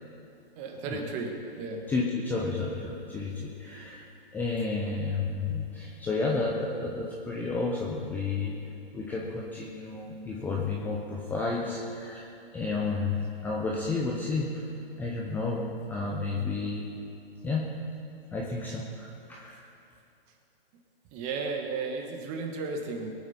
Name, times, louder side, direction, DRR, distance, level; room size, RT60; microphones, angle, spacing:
voice 1, 0.5-1.8 21.1-23.1, right 4 dB, 25° right, 3 dB, 1.6 m, -34 dB
voice 2, 1.9-4.1 4.3-14.7 15.0-15.6 15.9-16.8 17.4-17.7 18.3-19.7, left 3 dB, 5° left, -3 dB, 0.6 m, -31 dB
21.5 x 9.0 x 4.4 m, 2.7 s
hypercardioid pair, 150°, 30 cm